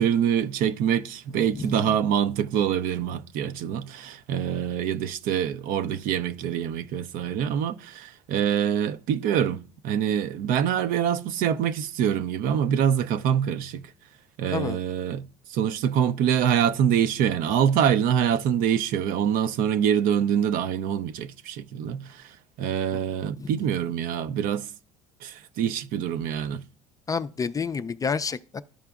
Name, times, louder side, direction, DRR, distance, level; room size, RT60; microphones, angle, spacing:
voice 1, 0.0-13.8 14.4-22.3 22.6-24.7 25.2-26.6, right 9 dB, 60° right, 0.5 m, -25 dB
voice 2, 1.3-2.0 14.5-14.8 22.9-23.0 23.4-23.7 27.1-28.6, left 5 dB, 20° left, 0.3 m, -30 dB
12.5 x 4.9 x 2.4 m
supercardioid pair, 80°, 16 cm